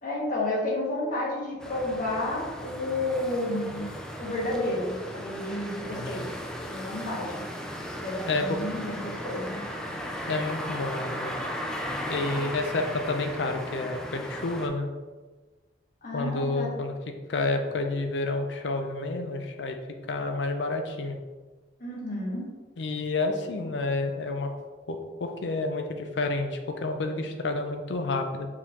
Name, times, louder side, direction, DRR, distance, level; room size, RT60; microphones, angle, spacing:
voice 1, 0.0-3.9 4.2-6.3 6.6-7.4 7.9-9.6 16.0-16.7 21.8-22.5, left 1 dB, 50° left, -5 dB, 1.4 m, -31 dB
sound 1, 1.6-14.7, equal, 5° left, 0.4 m, -36 dB
voice 2, 5.9-6.3 8.3-8.6 10.3-11.3 12.1-14.9 16.1-16.9 17.3-19.8 20.1-21.2 22.8-24.5 24.9-28.5, left 3 dB, 75° left, 5 dB, 0.5 m, -29 dB
4.8 x 3.6 x 2.9 m, 1.3 s
head